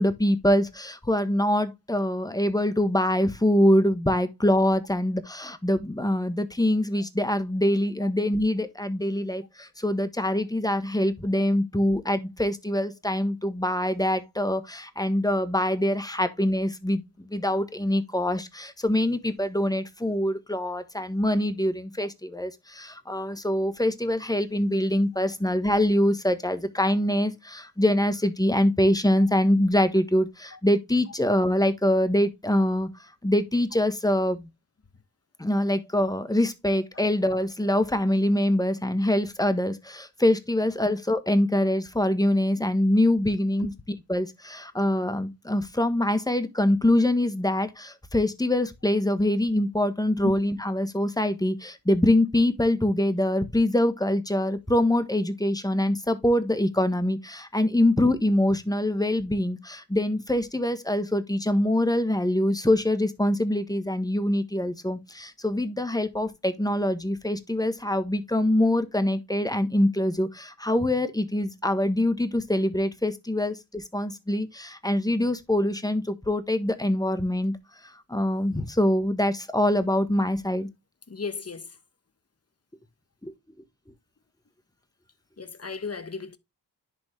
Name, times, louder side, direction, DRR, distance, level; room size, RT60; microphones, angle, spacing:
voice 1, 0.0-34.5 35.4-43.7 44.1-77.5 77.8-80.7 83.2-83.3, left 1 dB, 10° left, 1.4 m, -24 dB
voice 2, 81.1-81.7 85.4-86.4, left 4 dB, 40° left, 1.1 m, -34 dB
10.5 x 4.0 x 3.5 m
cardioid pair, 45°, 40 cm